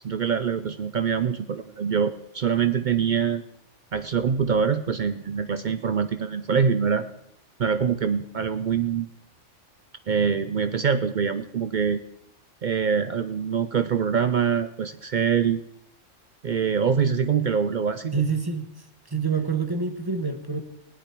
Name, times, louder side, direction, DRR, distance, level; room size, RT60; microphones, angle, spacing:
voice 1, 0.0-3.4 3.9-7.1 7.6-9.1 10.1-12.0 12.6-15.6 16.4-18.1, right 6 dB, 55° right, 10 dB, 0.5 m, -24 dB
voice 2, 18.1-20.6, right 5 dB, 20° right, 7 dB, 0.9 m, -27 dB
17.0 x 9.9 x 4.5 m, 0.76 s
omnidirectional pair, 1.3 m